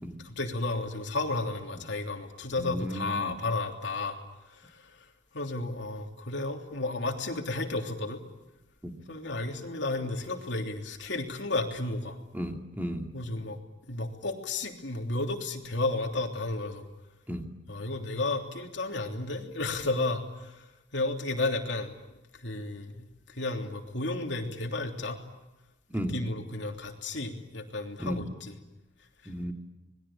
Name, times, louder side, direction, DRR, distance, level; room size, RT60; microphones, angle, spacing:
voice 1, 0.2-4.2 4.6-4.8 5.3-8.2 9.1-12.2 13.1-13.6 13.9-16.8 17.7-20.7 20.9-21.9 22.4-25.2 25.9-28.6, left 2 dB, 70° left, 3 dB, 3.2 m, -32 dB
voice 2, 2.7-3.3 8.8-8.9 12.3-13.0 17.3-17.4 25.9-26.1 28.0-28.2 29.3-29.5, equal, 10° right, 3 dB, 2.4 m, -33 dB
26.5 x 21.0 x 8.8 m, 1.0 s
head